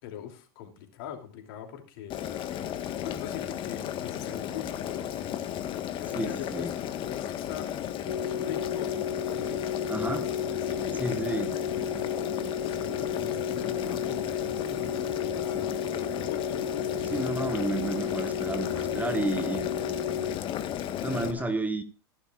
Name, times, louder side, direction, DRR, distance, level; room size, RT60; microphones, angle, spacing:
voice 1, 0.0-2.1 3.0-5.3 6.0-7.7 8.3-8.9 9.3-12.1 12.6-15.8 16.2-17.6 19.5-19.6 20.1-20.2 20.9-21.5, left 9 dB, 65° left, 3.0 m, -42 dB
Boiling, 2.1-21.3, left 10 dB, 40° left, 1.4 m, -34 dB
voice 2, 6.1-6.7 9.9-10.3 11.0-11.6 17.1-19.7 20.0-20.3 21.0-21.8, right 3 dB, 10° right, 1.2 m, -31 dB
sound 1, 8.1-20.4, left 7 dB, 90° left, 0.6 m, -33 dB
16.0 x 11.5 x 2.5 m
hypercardioid pair, 100°, 13 cm